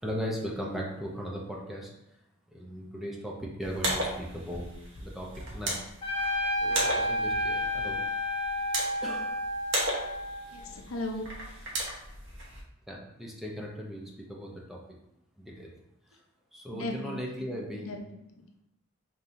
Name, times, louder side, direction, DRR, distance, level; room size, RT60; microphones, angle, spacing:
voice 1, 0.0-1.9 2.5-4.7 5.0-5.7 6.6-8.0 9.0-9.3 10.5-10.6 12.9-14.8 15.4-15.7 16.1-16.2 16.5-18.0, equal, ahead, -3 dB, 0.6 m, -38 dB
sound 1, 3.6-12.6, right 1 dB, 60° right, 1.1 m, -36 dB
Trumpet, 6.0-10.7, left 1 dB, 30° left, 0.8 m, -31 dB
voice 2, 10.5-11.2 16.7-18.4, left 2 dB, 75° left, 2 dB, 0.6 m, -38 dB
5.2 x 2.9 x 2.6 m, 0.83 s
head